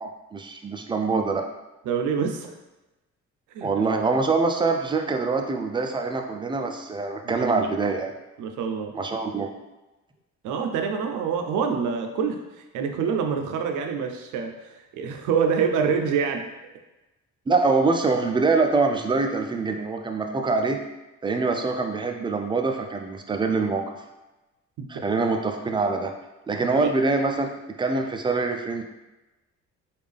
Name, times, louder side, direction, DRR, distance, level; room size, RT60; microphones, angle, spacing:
voice 1, 0.0-1.4 3.6-8.1 8.9-9.5 17.5-20.8 21.2-23.9 24.9-26.1 26.5-27.5 27.8-28.8, right 3 dB, 15° right, 4 dB, 0.4 m, -24 dB
voice 2, 1.9-2.5 3.5-3.9 7.2-7.7 8.4-8.9 10.4-12.4 12.7-14.6 15.0-16.4 24.8-24.9 26.5-26.9, right 6 dB, 85° right, 4 dB, 0.5 m, -26 dB
3.5 x 2.4 x 3.3 m, 1.0 s
cardioid pair, 90°, 30 cm